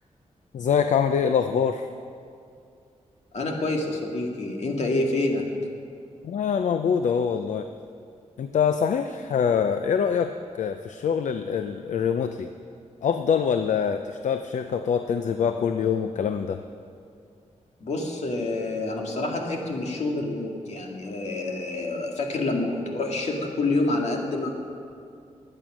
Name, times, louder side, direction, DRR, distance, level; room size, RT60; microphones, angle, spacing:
voice 1, 0.5-1.9 6.2-7.7 8.4-12.5 13.0-16.6, left 7 dB, 80° left, 8 dB, 0.6 m, -24 dB
voice 2, 3.3-5.4 17.8-24.6, left 2 dB, 65° left, 1 dB, 2.1 m, -27 dB
21.0 x 9.0 x 6.2 m, 2.4 s
wide cardioid pair, 155°, 12 cm